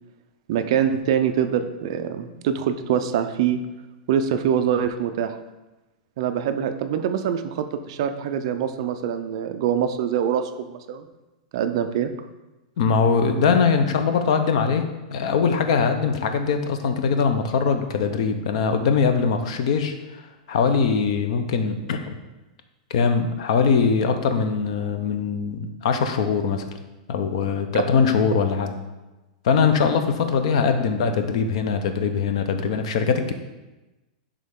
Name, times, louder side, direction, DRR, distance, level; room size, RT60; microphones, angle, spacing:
voice 1, 0.5-3.6 4.1-5.4 6.2-11.1 11.5-12.1, right 8 dB, 40° right, 9 dB, 0.4 m, -24 dB
voice 2, 12.8-14.8 15.1-20.2 20.5-22.2 22.9-26.6 27.1-28.7 29.4-33.3, left 5 dB, 50° left, 7 dB, 0.6 m, -22 dB
10.5 x 3.7 x 3.6 m, 1.1 s
supercardioid pair, 180°, 4 cm